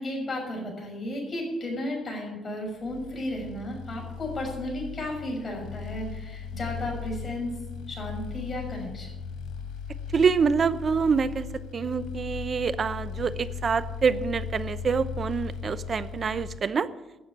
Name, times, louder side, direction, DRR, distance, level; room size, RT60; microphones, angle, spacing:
voice 1, 0.0-7.5 7.9-9.1, left 1 dB, 35° left, -1 dB, 6.3 m, -34 dB
sound 1, 2.8-16.6, left 6 dB, 90° left, 2.6 m, -37 dB
voice 2, 10.1-11.5 11.7-16.9, right 5 dB, 45° right, 15 dB, 0.8 m, -26 dB
12.0 x 7.7 x 8.5 m, 1.0 s
cardioid pair, 90°, 0 cm